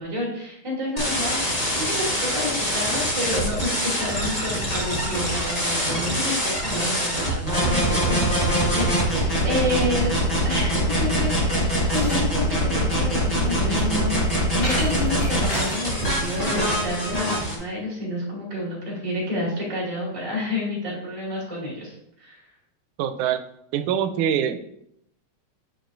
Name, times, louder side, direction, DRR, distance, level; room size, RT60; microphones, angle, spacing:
voice 1, 0.0-10.2 10.4-14.2 14.5-22.4, left 1 dB, 10° right, -4 dB, 2.0 m, -29 dB
sound 1, 1.0-17.5, equal, 65° left, 0.4 m, -24 dB
sound 2, 11.5-16.7, equal, 45° left, 3.3 m, -35 dB
voice 2, 23.0-23.4 23.7-24.6, right 9 dB, 90° right, 9 dB, 2.0 m, -24 dB
7.7 x 6.7 x 2.6 m, 0.75 s
omnidirectional pair, 3.4 m